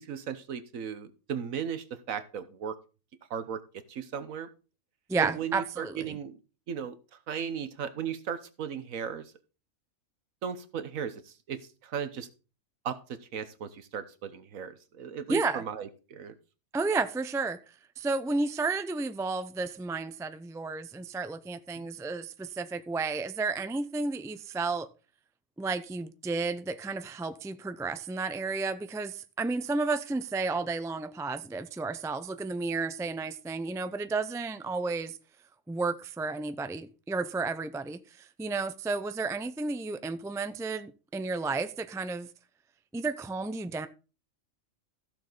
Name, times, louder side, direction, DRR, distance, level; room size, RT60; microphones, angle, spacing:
voice 1, 0.0-2.8 3.3-3.6 3.9-4.5 5.2-6.4 6.7-7.0 7.3-9.3 10.4-12.3 12.8-16.4 21.8-21.9, right 7 dB, 75° right, 1.4 m, -36 dB
voice 2, 5.1-6.1 15.3-15.6 16.7-17.6 18.0-24.9 25.6-35.2 35.7-42.3 42.9-43.9, right 3 dB, 5° right, 0.3 m, -32 dB
15.0 x 6.8 x 3.9 m
omnidirectional pair, 1.4 m